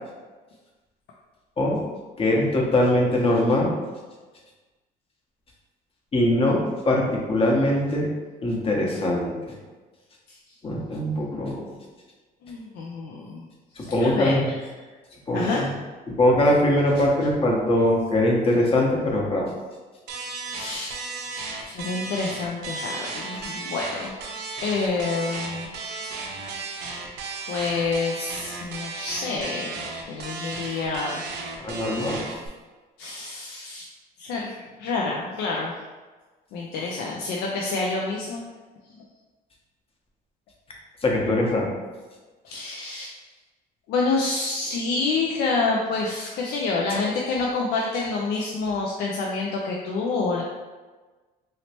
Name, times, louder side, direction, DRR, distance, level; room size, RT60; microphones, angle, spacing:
voice 1, 2.2-3.7 6.1-8.1 8.4-9.6 10.6-11.6 13.8-14.5 15.3-15.7 16.1-19.5 31.6-32.2 41.0-41.7 46.9-47.0, left 1 dB, 35° left, -2 dB, 0.8 m, -22 dB
voice 2, 12.4-13.4 13.8-14.5 15.3-15.7 17.0-17.1 20.4-20.9 21.7-25.8 27.5-31.5 33.0-33.9 34.2-35.7 36.5-38.4 42.4-43.1 43.9-50.4, left 3 dB, 75° left, -2 dB, 0.4 m, -28 dB
sound 1, 20.1-32.5, right 3 dB, 80° right, 0.6 m, -34 dB
3.1 x 2.8 x 2.9 m, 1.3 s
cardioid pair, 110°, 17 cm